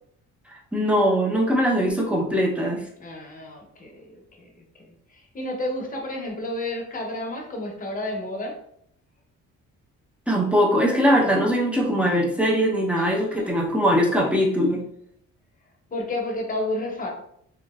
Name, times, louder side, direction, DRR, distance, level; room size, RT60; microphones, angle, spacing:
voice 1, 0.7-2.8 10.3-14.8, equal, 5° right, -1 dB, 0.6 m, -21 dB
voice 2, 3.0-8.5 12.9-13.6 15.9-17.1, left 1 dB, 30° left, 0 dB, 0.8 m, -31 dB
2.9 x 2.4 x 2.3 m, 0.70 s
cardioid pair, 90°, 30 cm